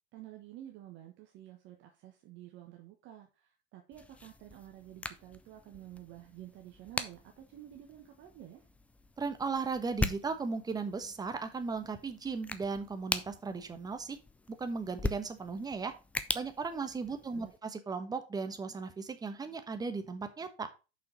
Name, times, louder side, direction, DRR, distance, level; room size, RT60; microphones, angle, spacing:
voice 1, 0.1-8.7 17.1-17.5, right 13 dB, 35° right, 2 dB, 1.3 m, -51 dB
sound 1, 3.9-17.6, left 3 dB, 5° left, 0.4 m, -41 dB
voice 2, 9.2-14.2 14.6-15.9 16.3-20.7, right 4 dB, 10° right, 8 dB, 1.1 m, -36 dB
6.5 x 5.6 x 5.2 m, 0.30 s
hypercardioid pair, 105°, 33 cm